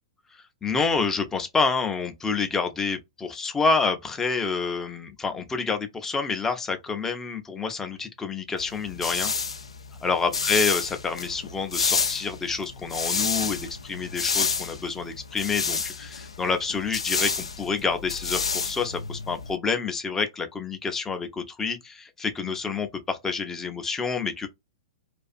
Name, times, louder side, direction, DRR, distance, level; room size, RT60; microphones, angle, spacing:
voice 1, 0.6-9.3 10.0-24.5, left 4 dB, 15° left, 0.5 m, -28 dB
sound 1, 8.6-19.6, left 5 dB, 80° left, 0.3 m, -29 dB
2.5 x 2.4 x 2.4 m
figure-of-eight pair, 105°, 3 cm